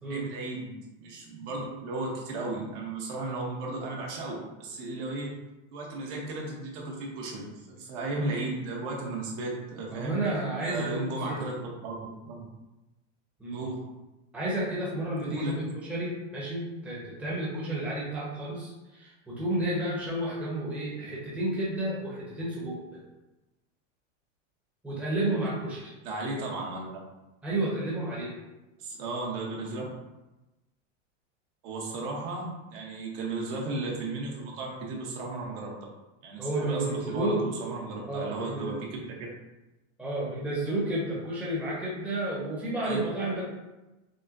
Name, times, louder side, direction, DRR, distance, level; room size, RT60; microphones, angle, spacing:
voice 1, 0.1-5.3 5.7-10.2 10.6-11.6 11.8-11.9 12.2-12.5 13.5-13.8 15.3-15.7 26.0-27.0 28.8-29.8 31.6-35.7 36.2-39.1 42.8-43.0, right 2 dB, 50° right, -2 dB, 1.0 m, -35 dB
voice 2, 9.9-11.4 13.4-13.6 14.3-23.0 24.8-25.9 27.4-28.4 36.4-38.8 40.0-43.4, right 1 dB, 5° right, -7 dB, 0.8 m, -31 dB
6.2 x 2.1 x 2.5 m, 1.0 s
supercardioid pair, 150°, 37 cm